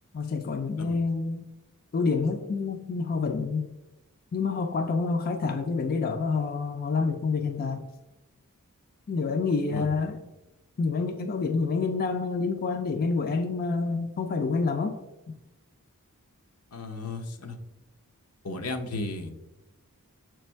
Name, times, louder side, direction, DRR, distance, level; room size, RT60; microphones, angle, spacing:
voice 1, 0.1-1.4 1.9-3.7 4.3-7.8 9.1-10.2 10.8-15.0, left 4 dB, 40° left, 6 dB, 0.4 m, -28 dB
voice 2, 16.7-17.5 18.4-19.3, left 2 dB, 85° left, 5 dB, 0.8 m, -34 dB
6.8 x 3.3 x 4.4 m, 0.95 s
head